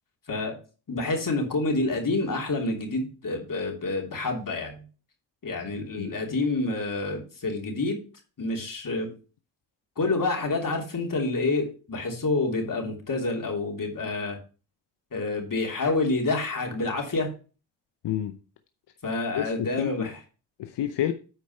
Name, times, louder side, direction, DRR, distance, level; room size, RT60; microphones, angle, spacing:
voice 1, 0.9-4.8 5.4-8.0 8.4-9.1 10.0-14.4 15.1-17.3 19.0-20.2, left 3 dB, 50° left, 3.1 m, -28 dB
voice 2, 5.7-6.1 18.0-18.4 19.3-20.1 20.6-21.1, left 11 dB, 75° left, 0.8 m, -29 dB
9.0 x 4.6 x 5.5 m
cardioid pair, 55°, 42 cm